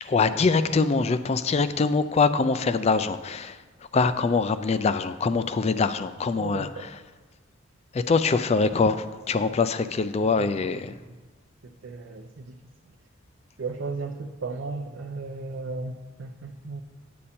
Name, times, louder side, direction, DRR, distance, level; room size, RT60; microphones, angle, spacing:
voice 1, 0.1-3.5 3.9-6.7 7.9-10.9, left 4 dB, 30° left, 13 dB, 0.3 m, -23 dB
voice 2, 6.3-6.9 10.2-10.5 11.6-12.6 13.6-16.8, right 3 dB, 65° right, 2 dB, 0.5 m, -35 dB
8.6 x 8.4 x 4.3 m, 1.3 s
head